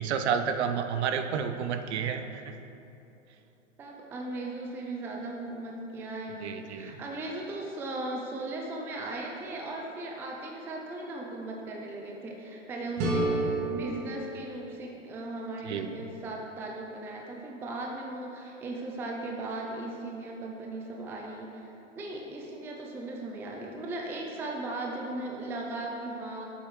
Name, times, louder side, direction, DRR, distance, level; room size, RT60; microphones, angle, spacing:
voice 1, 0.0-2.5 6.4-7.0 15.6-16.0, right 7 dB, 60° right, 8 dB, 0.7 m, -30 dB
voice 2, 3.8-26.4, right 2 dB, 5° right, 0 dB, 0.4 m, -37 dB
sound 1, 13.0-15.9, right 1 dB, 35° right, 1.4 m, -32 dB
8.0 x 7.5 x 3.2 m, 2.9 s
hypercardioid pair, 110°, 38 cm